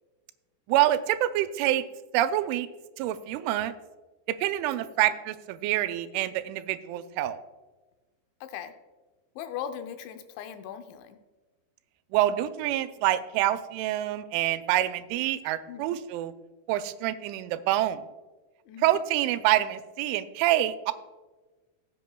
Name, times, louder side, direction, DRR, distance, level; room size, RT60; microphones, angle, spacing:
voice 1, 0.7-1.8 2.1-2.7 3.0-3.7 4.3-7.4 12.1-16.3 16.7-18.0 18.8-20.9, right 13 dB, 90° right, 11 dB, 3.0 m, -26 dB
voice 2, 8.4-8.7 9.4-11.2 15.7-16.0 18.7-19.0, left 9 dB, 80° left, 7 dB, 2.9 m, -39 dB
18.0 x 7.8 x 2.2 m, 1.2 s
omnidirectional pair, 5.4 m